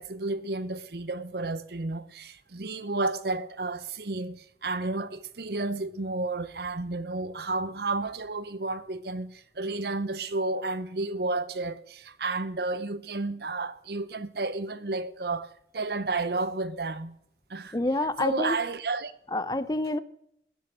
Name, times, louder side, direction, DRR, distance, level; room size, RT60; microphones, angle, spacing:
voice 1, 0.0-17.1 17.5-17.8 18.2-19.1, right 3 dB, 65° right, 0.8 m, -32 dB
voice 2, 17.7-18.6 19.3-20.0, left 2 dB, 20° left, 0.6 m, -27 dB
15.5 x 10.0 x 6.8 m
head